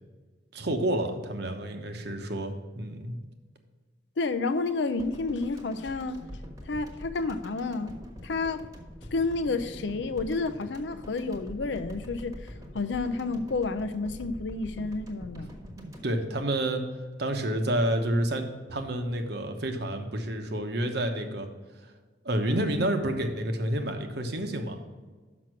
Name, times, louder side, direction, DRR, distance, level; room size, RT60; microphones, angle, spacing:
voice 1, 0.5-3.2 15.8-16.8 17.2-21.5 22.2-24.8, right 1 dB, 60° right, 1.0 m, -29 dB
voice 2, 4.2-6.2 6.7-8.0 8.2-8.7 9.1-12.4 12.7-15.5, left 3 dB, 70° left, 0.5 m, -30 dB
sound 1, 5.0-17.2 17.4-17.6, equal, 20° right, 1.2 m, -44 dB
6.2 x 5.9 x 6.0 m
head